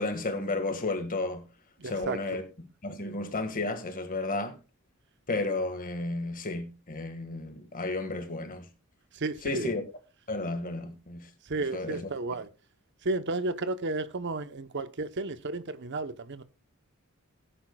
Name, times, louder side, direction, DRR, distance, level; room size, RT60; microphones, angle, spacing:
voice 1, 0.0-1.4 1.8-2.4 2.8-4.6 5.3-8.7 9.4-9.8 10.3-11.3 11.7-12.1, left 2 dB, 40° left, 1.8 m, -32 dB
voice 2, 1.8-2.4 9.1-9.7 11.4-12.5 13.0-16.4, right 3 dB, 55° right, 0.9 m, -33 dB
17.5 x 10.5 x 2.3 m
head